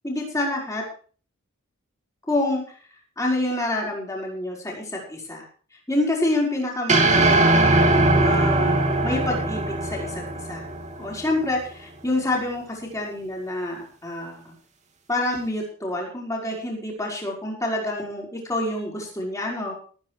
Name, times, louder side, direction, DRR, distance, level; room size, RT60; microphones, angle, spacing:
voice 1, 0.0-0.8 2.3-2.6 3.2-5.4 5.9-10.6 11.0-14.6 15.1-19.7, left 1 dB, 15° left, -1 dB, 5.6 m, -27 dB
sound 1, 6.9-11.3, right 2 dB, 35° right, 2.7 m, -20 dB
18.0 x 9.8 x 4.9 m, 0.41 s
head